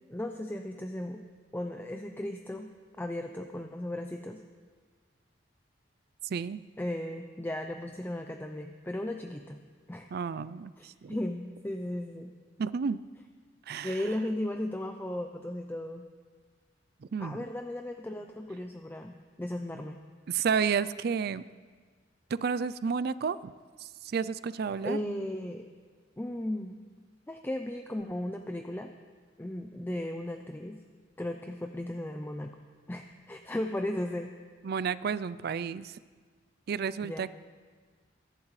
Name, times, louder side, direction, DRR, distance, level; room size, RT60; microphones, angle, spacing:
voice 1, 0.1-1.2 1.5-4.4 6.8-9.6 9.9-10.1 10.8-12.3 13.8-16.1 17.2-20.0 24.8-25.7 26.2-26.8 27.3-28.9 29.4-30.8 31.2-32.6 32.9-34.3 37.0-37.3, left 1 dB, 10° left, 5 dB, 0.5 m, -36 dB
voice 2, 6.2-6.6 10.1-11.2 12.6-13.0 13.7-14.0 17.0-17.4 20.3-21.4 22.3-23.5 23.8-25.0 34.6-36.0 36.7-37.3, right 6 dB, 60° right, 17 dB, 0.4 m, -31 dB
23.0 x 11.0 x 3.2 m, 1.5 s
head